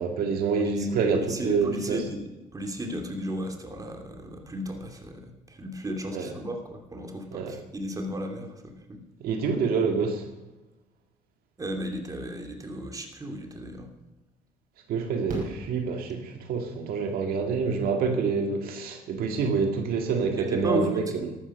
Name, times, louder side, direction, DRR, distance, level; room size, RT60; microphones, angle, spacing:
voice 1, 0.0-2.0 6.1-6.3 7.3-7.6 9.2-10.3 14.9-21.4, right 5 dB, 80° right, 4 dB, 2.0 m, -27 dB
voice 2, 1.1-2.2 2.5-9.0 11.6-13.9 20.4-21.0, equal, 25° right, 3 dB, 3.0 m, -34 dB
Fireworks, 15.3-16.6 18.4-18.5 18.7-18.8, right 2 dB, 60° right, 6.1 m, -39 dB
13.5 x 12.5 x 6.3 m, 1.0 s
cardioid pair, 100°, 15 cm